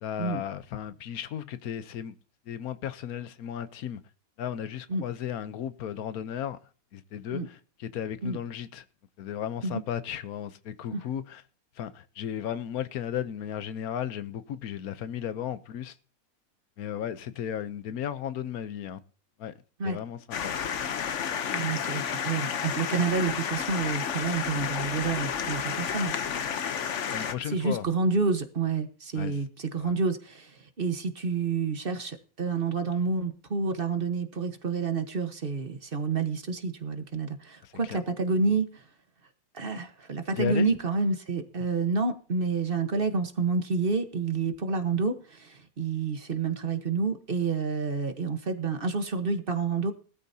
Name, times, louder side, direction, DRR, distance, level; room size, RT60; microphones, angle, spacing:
voice 1, 0.0-2.1 2.5-4.0 4.4-6.6 6.9-8.8 9.2-11.4 11.8-16.0 16.8-19.0 19.4-19.5 19.8-20.6 27.1-27.9 29.1-29.4 29.8-29.9 37.6-38.0 40.4-40.7, left 9 dB, 90° left, 1.3 m, -35 dB
sound 1, 20.3-27.3, left 7 dB, 60° left, 1.1 m, -31 dB
voice 2, 21.5-26.1 27.5-38.8 39.5-49.9, right 4 dB, 40° right, 1.4 m, -29 dB
19.5 x 13.0 x 2.8 m
omnidirectional pair, 1.5 m